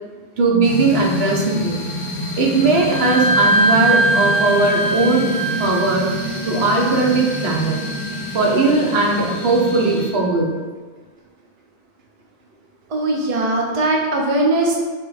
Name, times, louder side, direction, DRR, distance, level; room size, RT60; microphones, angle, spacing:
voice 1, 0.4-1.8 2.4-5.3 5.6-6.1 6.4-7.8 8.3-10.5, right 3 dB, 75° right, -1 dB, 0.9 m, -18 dB
sound 1, 0.6-10.1, left 1 dB, 75° left, 1.0 m, -28 dB
Wind instrument woodwind instrument, 2.7-10.2, right 2 dB, 5° left, 0.7 m, -23 dB
voice 2, 12.9-14.8, right 2 dB, 45° right, -1 dB, 0.5 m, -19 dB
4.0 x 2.1 x 3.9 m, 1.4 s
omnidirectional pair, 1.1 m